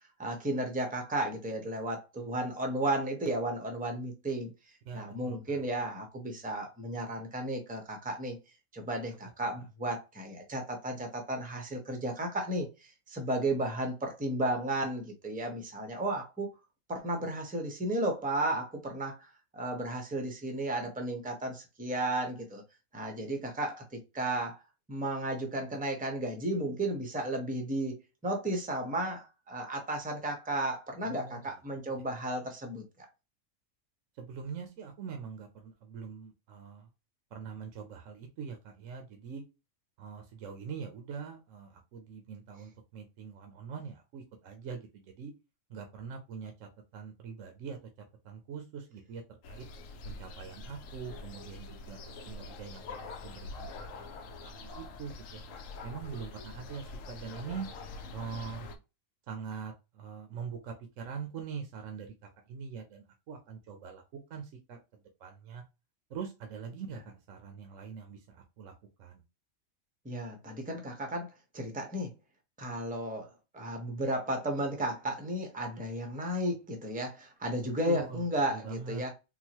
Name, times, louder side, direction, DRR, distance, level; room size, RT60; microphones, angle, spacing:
voice 1, 0.2-4.5 4.9-8.4 8.7-16.5 16.9-22.6 22.9-24.6 24.9-33.1 70.0-72.1 72.6-79.1, right 1 dB, 10° right, 0.6 m, -34 dB
voice 2, 4.9-5.6 31.1-31.4 34.2-36.9 37.3-39.4 40.0-45.3 45.7-47.8 48.2-49.2 49.5-49.6 50.0-54.1 54.4-55.4 55.8-57.7 58.1-58.7 59.3-62.1 62.5-64.0 64.3-64.8 65.2-65.6 66.1-68.7 69.0-69.2 77.8-78.2 78.5-79.0, right 6 dB, 75° right, 1.0 m, -43 dB
sound 1, 49.4-58.8, left 3 dB, 80° left, 1.0 m, -45 dB
3.9 x 2.3 x 2.9 m
omnidirectional pair, 1.4 m